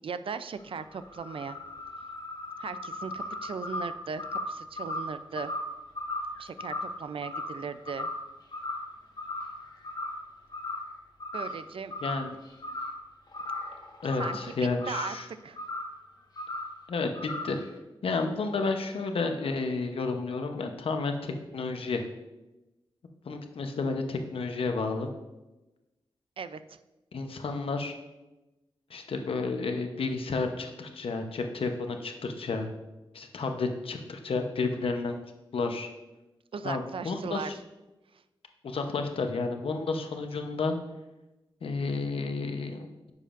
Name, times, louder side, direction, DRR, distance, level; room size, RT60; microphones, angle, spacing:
voice 1, 0.0-1.6 2.6-5.5 6.4-8.1 11.3-11.9 14.2-14.5 14.9-15.2 15.4-15.6 26.4-26.8 36.5-37.6, right 5 dB, 75° right, 12 dB, 0.5 m, -38 dB
sound 1, 0.6-8.3 8.5-8.9 9.2-10.2 10.5-10.9 11.2-11.6 11.9-13.0 13.3-15.2 15.6-15.9 16.4-16.7 17.1-17.6, left 2 dB, 45° left, 1.4 m, -37 dB
voice 2, 14.0-15.3 16.9-17.6 18.0-22.0 23.2-25.1 27.1-27.9 28.9-32.7 33.1-35.2 35.5-35.9 36.6-37.5 38.6-40.8 41.6-43.1, left 3 dB, 80° left, 5 dB, 0.9 m, -31 dB
10.0 x 6.7 x 2.6 m, 1.0 s
cardioid pair, 60°, 9 cm